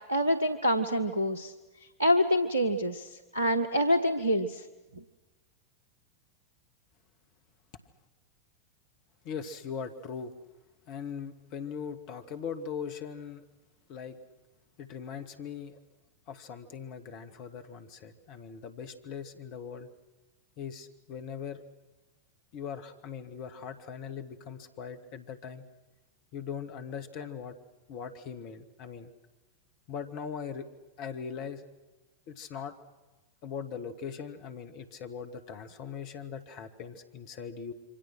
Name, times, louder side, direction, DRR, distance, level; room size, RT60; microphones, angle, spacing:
voice 1, 0.1-1.5 2.0-4.6, equal, 80° right, 10 dB, 1.3 m, -26 dB
voice 2, 9.2-10.3 10.9-13.4 13.9-14.2 14.8-15.8 16.3-19.9 20.6-21.6 22.5-25.7 26.3-27.6 27.9-29.1 29.9-30.7 31.0-31.6 32.3-32.8 33.4-37.7, left 7 dB, 45° left, 7 dB, 2.2 m, -40 dB
28.0 x 24.5 x 6.3 m, 1.2 s
figure-of-eight pair, 90°, 0 cm